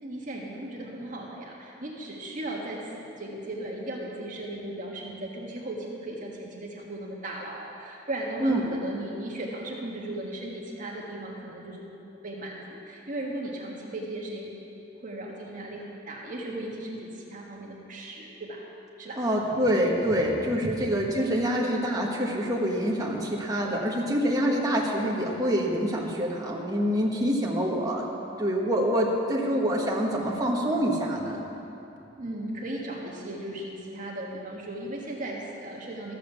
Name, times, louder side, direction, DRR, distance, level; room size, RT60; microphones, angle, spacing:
voice 1, 0.0-11.8 12.2-14.5 15.0-18.6 19.0-19.2 20.1-20.2 20.6-20.7 32.2-36.1, right 1 dB, 45° right, -3 dB, 1.6 m, -36 dB
voice 2, 8.4-8.7 19.2-28.1 28.4-31.4, equal, 20° right, -2 dB, 1.5 m, -26 dB
14.0 x 7.7 x 7.0 m, 2.8 s
head